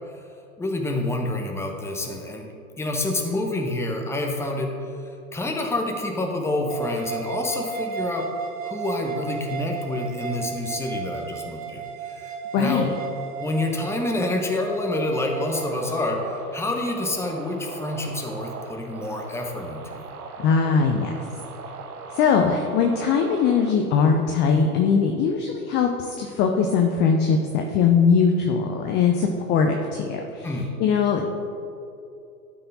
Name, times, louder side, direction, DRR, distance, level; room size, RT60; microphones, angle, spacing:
voice 1, 0.6-2.5 2.8-4.7 5.0-8.3 8.6-12.9 13.4-20.0 30.4-30.7, left 2 dB, 5° left, 1 dB, 0.9 m, -28 dB
sound 1, 6.7-15.7, right 5 dB, 55° right, 1.5 m, -34 dB
voice 2, 12.5-12.9 20.4-21.1 22.2-30.5 30.8-31.3, left 6 dB, 25° left, 3 dB, 0.5 m, -21 dB
sound 2, 15.5-23.7, right 5 dB, 75° right, 0.9 m, -39 dB
12.0 x 4.8 x 4.0 m, 2.6 s
hypercardioid pair, 100°, 45 cm